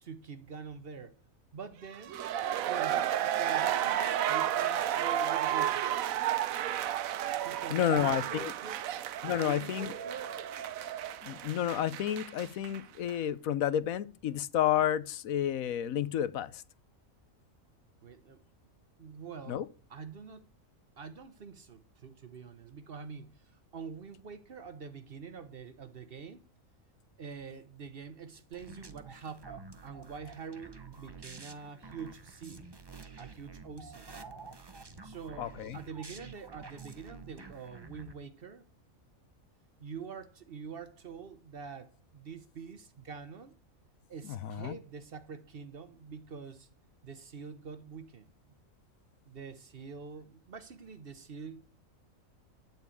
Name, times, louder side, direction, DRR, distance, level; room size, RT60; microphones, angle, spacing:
voice 1, 0.0-1.2 1.5-2.2 2.6-5.9 7.4-8.8 9.4-10.5 18.0-18.4 19.0-19.6 19.9-20.5 21.0-26.5 27.2-32.7 33.2-34.1 35.0-38.7 39.8-43.5 44.1-46.7 47.0-48.5 49.3-51.6, right 6 dB, 50° right, 1.0 m, -45 dB
sound 1, 1.9-12.8 13.1-13.2, right 11 dB, 80° right, 1.1 m, -32 dB
voice 2, 7.7-8.5 9.2-9.9 11.2-16.6 19.5-19.7 35.4-35.8 44.3-44.8, left 10 dB, 85° left, 1.2 m, -31 dB
sound 2, 28.5-38.1, right 4 dB, 20° right, 0.8 m, -49 dB
12.0 x 4.5 x 8.3 m
omnidirectional pair, 1.4 m